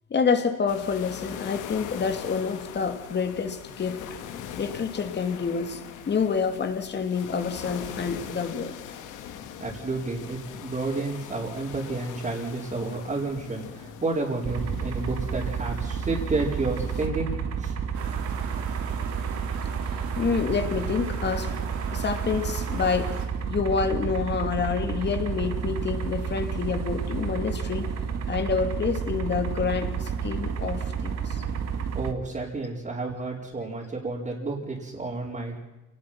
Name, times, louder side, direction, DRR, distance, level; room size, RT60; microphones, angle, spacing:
voice 1, 0.1-4.0 4.6-5.8 6.1-8.8 19.2-19.3 20.2-21.5 21.9-23.2 23.5-27.9 28.3-31.4, left 5 dB, 35° left, 7 dB, 2.9 m, -28 dB
sound 1, 0.7-17.1, left 9 dB, 80° left, 2.2 m, -41 dB
voice 2, 9.6-17.7 31.9-35.6, right 3 dB, 25° right, -5 dB, 4.7 m, -31 dB
sound 2, 14.4-32.1, right 6 dB, 55° right, 2.1 m, -30 dB
sound 3, 17.9-23.3, right 6 dB, 75° right, 4.3 m, -39 dB
28.5 x 19.0 x 5.9 m, 1.0 s
cardioid pair, 115°, 30 cm